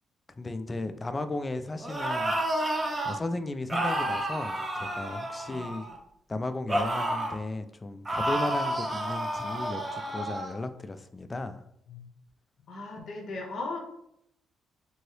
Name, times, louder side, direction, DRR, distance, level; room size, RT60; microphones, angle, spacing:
voice 1, 0.4-2.4 3.0-5.9 6.3-11.6, left 2 dB, 25° left, 9 dB, 0.3 m, -35 dB
sound 1, 1.8-3.2 3.7-6.0 6.7-7.4 8.0-10.5, right 1 dB, 20° right, 0.6 m, -30 dB
voice 2, 5.5-5.8 11.9-12.1 12.7-13.8, left 3 dB, 65° left, 0 dB, 0.7 m, -37 dB
2.8 x 2.7 x 3.1 m, 0.76 s
cardioid pair, 90°, 0 cm